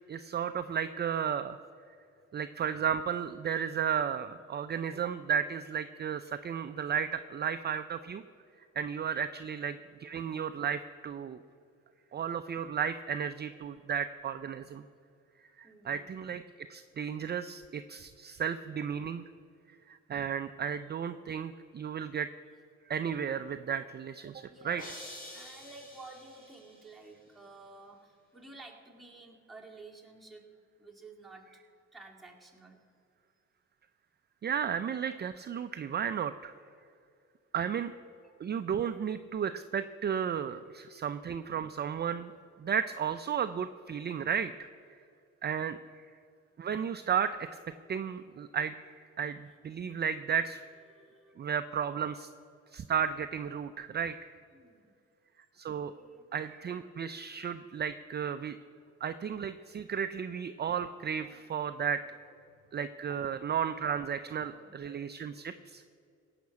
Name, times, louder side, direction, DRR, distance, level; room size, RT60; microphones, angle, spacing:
voice 1, 0.1-1.6 2.3-8.2 8.8-11.4 12.1-14.8 15.6-16.4 16.7-19.2 19.9-22.3 22.9-24.8 34.4-36.5 37.5-37.9 38.4-42.3 42.6-44.7 45.4-46.1 46.6-47.6 47.9-50.6 51.4-52.3 52.7-54.3 55.6-55.9 56.3-58.6 59.0-62.0 62.7-65.8, right 8 dB, 35° right, 10 dB, 0.5 m, -34 dB
voice 2, 15.6-16.1 24.4-24.9 25.3-31.5 31.9-32.8 38.1-38.4 50.9-51.4 53.6-53.8 54.5-54.9 55.8-56.3 61.2-61.7 62.0-62.7 64.1-64.9 65.5-65.6, right 3 dB, ahead, -2 dB, 2.4 m, -53 dB
sound 1, 24.8-26.9, left 1 dB, 30° left, 3.5 m, -47 dB
17.0 x 5.9 x 8.4 m, 2.4 s
cardioid pair, 90°, 30 cm